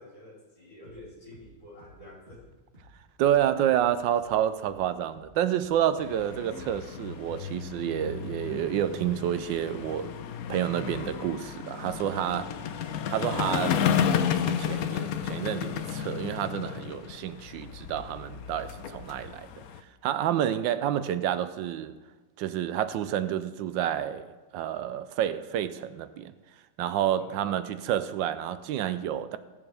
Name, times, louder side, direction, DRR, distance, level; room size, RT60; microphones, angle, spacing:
voice 1, 0.0-2.5 12.4-13.0 27.1-27.5, left 1 dB, 45° left, 4.6 m, -48 dB
sound 1, 0.8-1.1 1.3-1.5 1.8-2.0 2.3-2.5 2.7-3.0 3.2-3.4 3.7-3.9 4.2-4.4 4.6-4.9 5.1-5.3 5.6-5.8 6.1-6.3 6.5-6.8 7.0-7.2 7.5-7.7 8.0-8.7 8.9-9.1 9.4-9.6 9.9-10.1 10.4-10.6 10.8-11.1 11.3-11.5 11.8-12.0 12.3-12.5 12.7-13.0 13.2-13.4 13.7-13.9 14.2-14.4 14.6-14.9 15.1-15.3 15.6-15.8, equal, 30° right, 3.4 m, -54 dB
voice 2, 3.2-10.1 10.5-12.5 13.1-13.8 14.4-19.5 20.0-21.9 22.4-24.3 24.5-26.3 26.8-29.4, right 10 dB, 80° right, 1.3 m, -29 dB
sound 2, 6.0-19.8, left 8 dB, 65° left, 0.9 m, -32 dB
21.5 x 7.2 x 3.4 m
omnidirectional pair, 2.0 m